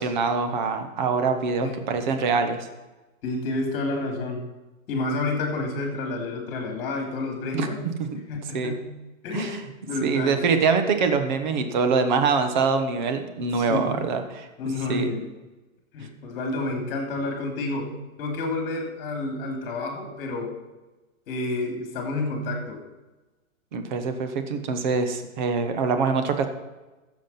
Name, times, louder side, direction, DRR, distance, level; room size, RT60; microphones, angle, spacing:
voice 1, 0.0-2.7 7.5-7.7 8.5-8.7 9.3-9.6 10.0-14.5 14.9-15.1 23.7-26.5, right 5 dB, 35° right, 7 dB, 1.2 m, -24 dB
voice 2, 3.2-4.4 4.9-7.8 8.3-8.9 9.2-10.5 13.5-13.9 14.6-15.3 15.9-17.9 18.2-20.6 21.3-22.8, left 2 dB, 25° left, 2 dB, 3.1 m, -29 dB
15.0 x 7.5 x 5.8 m, 1.1 s
hypercardioid pair, 170°, 41 cm